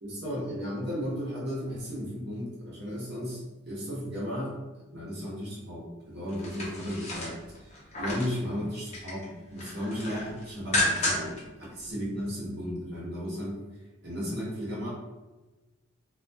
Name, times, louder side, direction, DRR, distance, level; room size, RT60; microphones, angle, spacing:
voice 1, 0.0-9.3 9.5-13.5 14.0-14.9, equal, 45° right, -6 dB, 0.9 m, -35 dB
sound 1, 6.3-8.4 8.7-9.3 9.6-11.4 11.8-11.9, left 1 dB, 30° left, 0.6 m, -31 dB
2.4 x 2.2 x 2.6 m, 1.1 s
head